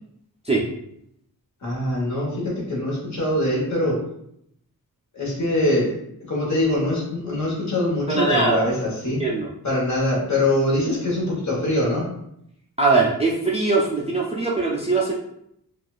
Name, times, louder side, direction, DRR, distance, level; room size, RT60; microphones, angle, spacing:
voice 1, 1.6-4.0 5.1-5.9 6.3-9.2 9.6-12.1, left 1 dB, 45° left, -4 dB, 1.2 m, -23 dB
voice 2, 8.1-8.7 9.2-9.5 12.8-15.1, right 3 dB, 20° right, -4 dB, 0.3 m, -21 dB
4.2 x 2.3 x 2.4 m, 0.76 s
wide cardioid pair, 170°, 39 cm